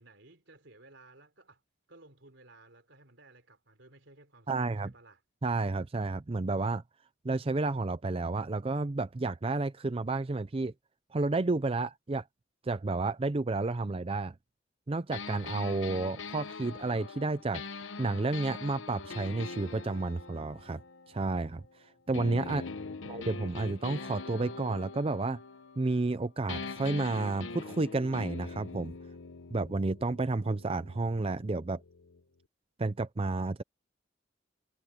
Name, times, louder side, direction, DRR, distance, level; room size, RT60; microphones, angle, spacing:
voice 1, 0.0-1.6 1.9-5.2 22.7-23.2, right 2 dB, 70° right, 3.7 m, -57 dB
voice 2, 4.5-4.9 5.4-6.8 7.2-10.7 11.1-12.2 12.6-14.3 14.9-17.6 18.0-20.8 21.1-21.6 22.1-22.7 23.0-25.4 25.8-28.9 29.5-31.8 32.8-33.6, right 3 dB, 30° right, 0.5 m, -31 dB
sound 1, 15.1-21.7 22.1-26.2 26.5-32.2, left 4 dB, 85° left, 1.0 m, -43 dB
head